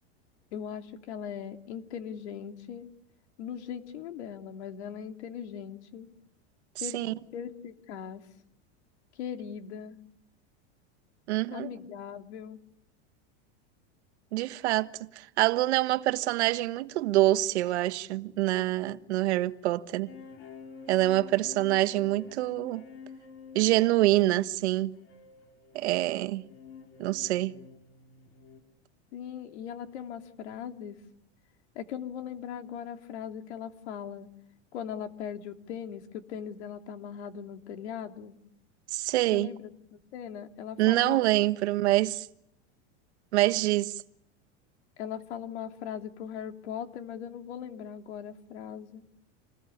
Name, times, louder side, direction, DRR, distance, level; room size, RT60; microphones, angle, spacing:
voice 1, 0.5-2.9 3.4-6.1 6.8-7.0 7.3-8.2 9.1-10.0 11.5-12.6 29.1-31.0 31.7-34.3 34.7-38.4 39.3-41.2 45.0-49.0, left 8 dB, 80° left, 3.0 m, -39 dB
voice 2, 11.3-11.7 14.3-20.1 20.9-22.8 23.5-25.0 25.7-26.5 27.0-27.6 38.9-39.5 40.8-42.3 43.3-44.0, right 16 dB, 80° right, 1.5 m, -26 dB
sound 1, 20.1-28.6, left 5 dB, 40° left, 4.2 m, -49 dB
28.0 x 20.5 x 10.0 m
supercardioid pair, 160°, 33 cm